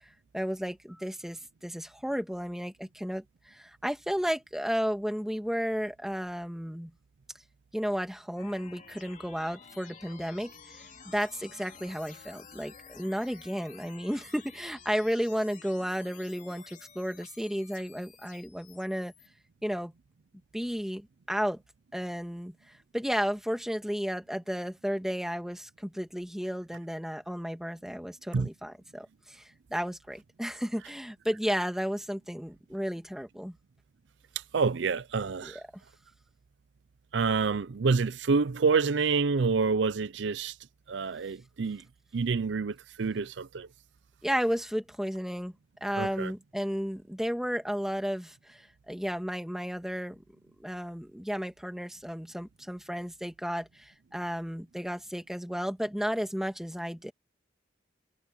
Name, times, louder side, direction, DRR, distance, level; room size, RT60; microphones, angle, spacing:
voice 1, 0.3-6.9 7.7-19.1 19.6-19.9 20.5-21.6 21.9-22.5 22.9-33.6 35.4-35.6 44.2-45.5 45.8-50.2 50.6-57.1, equal, ahead, 2.0 m, -33 dB
sound 1, 8.4-19.3, left 6 dB, 45° left, 3.1 m, -52 dB
voice 2, 34.5-35.6 37.1-40.5 40.9-41.8 42.1-43.7 46.0-46.3, right 4 dB, 80° right, 0.5 m, -27 dB
head